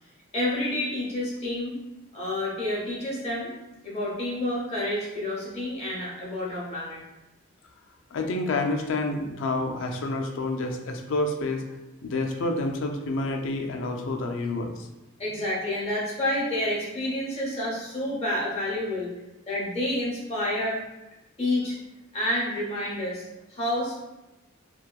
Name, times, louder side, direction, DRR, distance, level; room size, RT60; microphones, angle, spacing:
voice 1, 0.3-1.8 2.1-3.5 3.8-7.0 15.2-19.1 19.5-20.8 21.4-21.8 22.1-23.2 23.5-24.0, left 1 dB, 30° left, -6 dB, 0.7 m, -29 dB
voice 2, 8.1-11.6 12.0-14.9, left 2 dB, 60° left, 3 dB, 0.3 m, -28 dB
2.8 x 2.2 x 2.3 m, 1.0 s
head